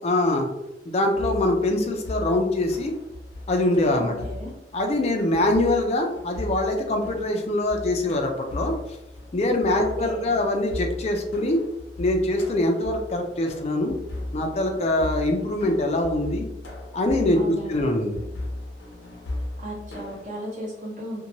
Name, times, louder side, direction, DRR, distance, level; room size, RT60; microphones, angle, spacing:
voice 1, 0.0-0.5 0.9-2.9 3.5-4.2 4.7-8.7 9.3-11.6 12.0-13.9 14.3-16.5 16.9-18.2, left 1 dB, 35° left, 3 dB, 0.4 m, -23 dB
sound 1, 1.1-20.2, left 1 dB, 80° left, 0.6 m, -37 dB
voice 2, 4.0-4.5 9.7-10.3 17.4-17.9 19.6-21.2, equal, 45° right, -4 dB, 1.0 m, -35 dB
2.6 x 2.2 x 2.8 m, 0.89 s
head